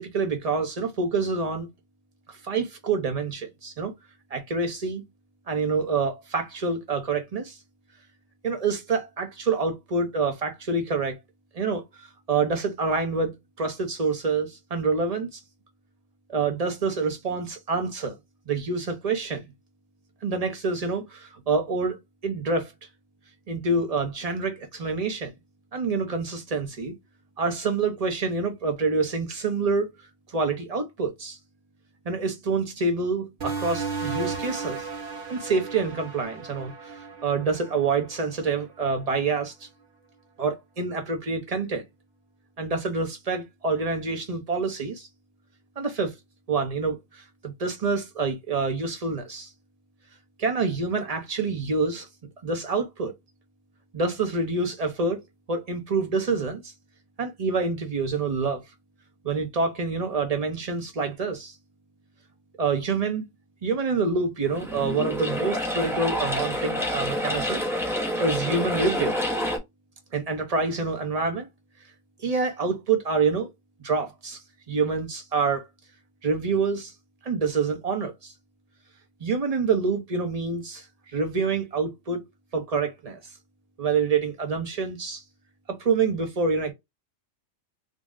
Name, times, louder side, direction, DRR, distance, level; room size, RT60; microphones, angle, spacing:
voice 1, 0.0-1.7 2.4-3.9 4.3-5.0 5.5-7.6 8.4-11.2 11.5-15.4 16.3-18.2 18.5-19.5 20.2-22.0 22.2-22.7 23.5-25.3 25.7-26.9 27.4-29.9 30.3-31.4 32.0-34.8 35.3-39.7 40.4-41.8 42.6-45.1 45.8-46.1 46.5-49.5 50.4-52.1 52.4-53.1 53.9-55.2 55.5-56.7 57.2-58.6 59.2-61.5 62.6-63.2 63.6-67.6 68.2-69.2 70.1-71.5 72.2-73.5 73.8-74.4 74.7-75.7 76.2-76.9 77.2-78.3 79.2-82.2 82.5-83.2 83.8-85.2 85.7-86.7, right 4 dB, 35° right, 0.7 m, -27 dB
sound 1, 33.4-38.6, right 5 dB, 60° right, 1.3 m, -35 dB
sound 2, 64.4-69.6, equal, ahead, 0.8 m, -28 dB
3.9 x 2.0 x 3.6 m
omnidirectional pair, 1.4 m